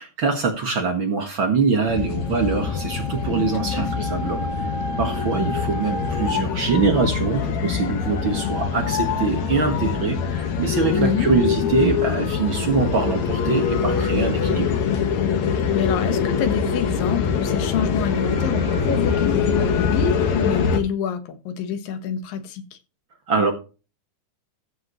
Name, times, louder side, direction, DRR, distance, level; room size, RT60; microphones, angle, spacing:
voice 1, 0.0-4.7 5.0-14.8 23.3-23.5, right 4 dB, 45° right, 1.9 m, -23 dB
sound 1, 1.9-20.8, left 6 dB, 60° left, 2.7 m, -24 dB
voice 2, 3.7-4.1 10.9-11.3 15.7-22.8, left 7 dB, 85° left, 3.0 m, -27 dB
14.5 x 7.8 x 3.1 m
omnidirectional pair, 3.9 m